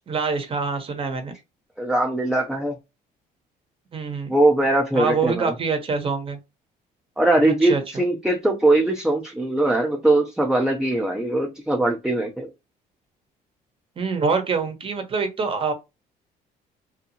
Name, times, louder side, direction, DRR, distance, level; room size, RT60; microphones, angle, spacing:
voice 1, 0.1-1.3 3.9-4.3 4.9-6.4 7.4-8.0 14.0-15.7, right 4 dB, 35° right, 0.8 m, -25 dB
voice 2, 1.8-2.8 4.3-5.5 7.2-12.5, right 2 dB, 5° right, 0.4 m, -21 dB
2.6 x 2.3 x 2.7 m
cardioid pair, 110°, 17 cm